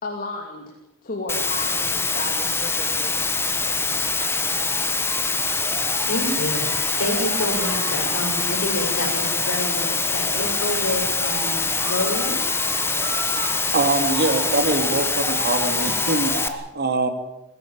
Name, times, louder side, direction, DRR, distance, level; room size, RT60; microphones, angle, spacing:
voice 1, 0.0-3.4, left 2 dB, 40° left, 1 dB, 2.9 m, -33 dB
Water, 1.3-16.5, left 4 dB, 10° left, 1.4 m, -24 dB
sound 1, 2.2-2.3 2.8-16.5, right 1 dB, 15° right, 7.1 m, -36 dB
voice 2, 6.0-6.7 7.0-12.4, left 1 dB, 70° left, 3 dB, 5.5 m, -28 dB
voice 3, 13.4-17.1, right 3 dB, 50° right, 7 dB, 2.6 m, -24 dB
22.5 x 15.5 x 9.0 m, 0.90 s
head